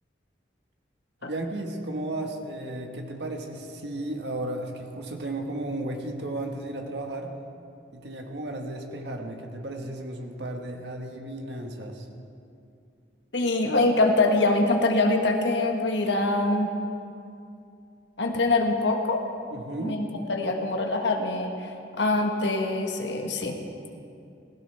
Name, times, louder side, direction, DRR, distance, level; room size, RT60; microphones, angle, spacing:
voice 1, 1.2-7.3 7.9-12.1 19.5-20.0, right 1 dB, 70° right, 3 dB, 1.5 m, -34 dB
voice 2, 13.3-16.7 18.2-19.2 19.8-20.0 20.3-21.5 22.0-23.5, left 2 dB, 80° left, 3 dB, 1.4 m, -24 dB
16.5 x 16.0 x 3.5 m, 2.5 s
head